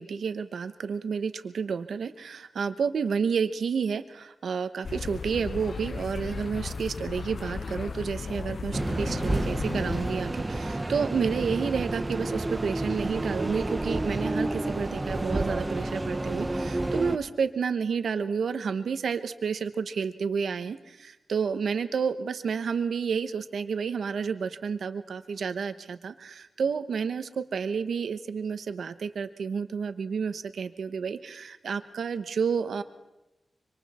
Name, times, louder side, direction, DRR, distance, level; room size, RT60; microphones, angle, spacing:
voice 1, 0.0-32.8, right 6 dB, 80° right, 10 dB, 1.0 m, -30 dB
sound 1, 4.8-10.1, left 4 dB, 45° left, 0.6 m, -35 dB
sound 2, 8.7-17.2, right 2 dB, 15° right, 0.9 m, -30 dB
25.5 x 25.0 x 4.3 m, 0.99 s
wide cardioid pair, 155°, 0 cm